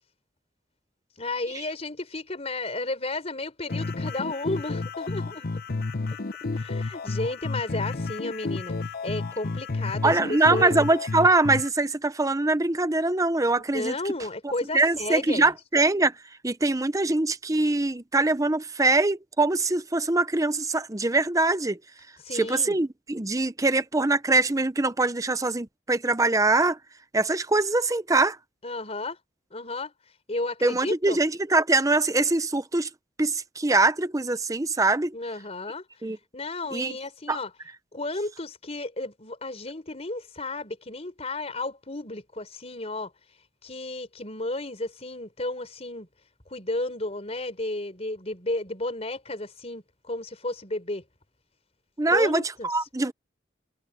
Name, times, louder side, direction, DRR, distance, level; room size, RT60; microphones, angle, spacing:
voice 1, 1.2-5.5 6.5-8.8 9.0-10.7 13.7-15.5 22.2-22.8 28.6-29.2 29.5-29.9 30.3-31.2 35.1-35.8 36.3-37.5 37.9-43.1 43.6-46.1 46.5-51.0 52.1-52.7, left 2 dB, 35° left, 4.5 m, -33 dB
sound 1, 3.7-11.7, left 3 dB, 55° left, 0.8 m, -31 dB
voice 2, 10.0-13.9 14.4-16.1 16.4-21.8 22.3-26.8 27.1-28.4 30.6-32.9 33.2-35.1 36.0-36.2 36.7-37.0 37.3-37.4 52.0-53.1, right 2 dB, 20° right, 0.8 m, -23 dB
head